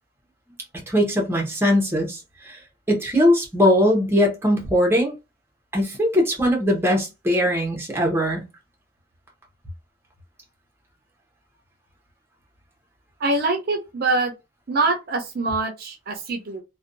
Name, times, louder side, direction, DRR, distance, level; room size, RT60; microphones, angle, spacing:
voice 1, 0.9-2.2 2.5-2.6 2.9-5.1 5.7-8.4, equal, 10° right, 0.7 m, -20 dB
voice 2, 13.2-14.3 14.7-16.6, right 3 dB, 50° right, 0.5 m, -24 dB
2.5 x 2.2 x 2.5 m
head